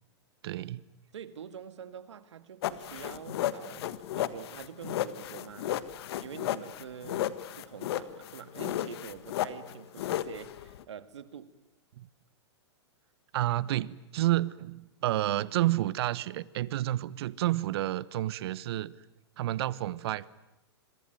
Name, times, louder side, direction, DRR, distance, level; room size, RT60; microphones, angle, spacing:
voice 1, 0.4-0.8 12.0-12.1 13.3-19.0 19.4-20.3, right 15 dB, 60° right, 1.1 m, -30 dB
voice 2, 1.1-5.9 6.2-11.5, right 8 dB, 80° right, 2.1 m, -46 dB
sound 1, 2.6-10.8, left 13 dB, 60° left, 1.6 m, -33 dB
27.0 x 23.5 x 9.2 m
hypercardioid pair, 125°, 15 cm